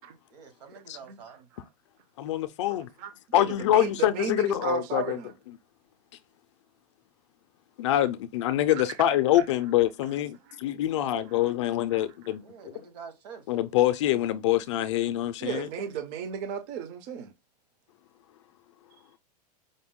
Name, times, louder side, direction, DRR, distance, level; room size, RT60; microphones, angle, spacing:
voice 1, 0.3-1.4 12.4-13.4, right 6 dB, 75° right, 1.7 m, -46 dB
voice 2, 2.2-2.9 3.3-5.2 7.8-12.7 13.5-15.7, left 13 dB, 45° left, 0.4 m, -25 dB
voice 3, 3.0-5.3 8.7-8.8 9.3-9.4 10.5-10.6 10.9-11.4 11.9-12.0 15.4-17.3, right 8 dB, 25° right, 0.4 m, -35 dB
5.1 x 2.1 x 3.5 m
supercardioid pair, 165°, 21 cm